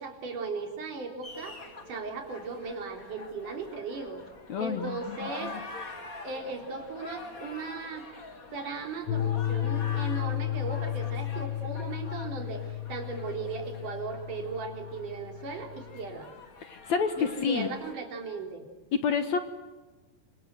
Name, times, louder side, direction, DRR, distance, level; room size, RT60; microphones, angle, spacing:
voice 1, 0.0-1.6 1.9-4.2 4.6-5.5 6.2-8.1 8.5-16.3 17.2-18.6, right 4 dB, 60° right, 4 dB, 5.0 m, -37 dB
sound 1, 1.2-17.9, left 3 dB, 25° left, 2.3 m, -46 dB
voice 2, 4.5-5.6 16.6-17.7 18.9-19.4, left 6 dB, 60° left, 9 dB, 2.2 m, -29 dB
sound 2, 9.1-16.1, left 12 dB, 80° left, 3.0 m, -33 dB
27.0 x 25.0 x 7.8 m, 1.3 s
omnidirectional pair, 4.3 m